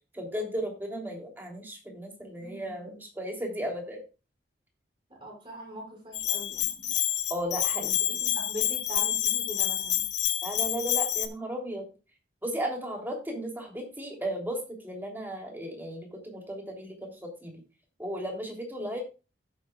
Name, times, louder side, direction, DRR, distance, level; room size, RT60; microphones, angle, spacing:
voice 1, 0.1-4.0 7.3-8.0 10.4-11.9 12.4-17.6 18.0-19.0, equal, 10° right, 1 dB, 3.0 m, -35 dB
voice 2, 2.4-3.0 5.2-6.9 7.7-10.0, equal, 30° right, 0 dB, 5.1 m, -42 dB
Bell, 6.1-11.3, left 13 dB, 75° left, 1.2 m, -28 dB
16.0 x 7.8 x 2.4 m, 0.31 s
head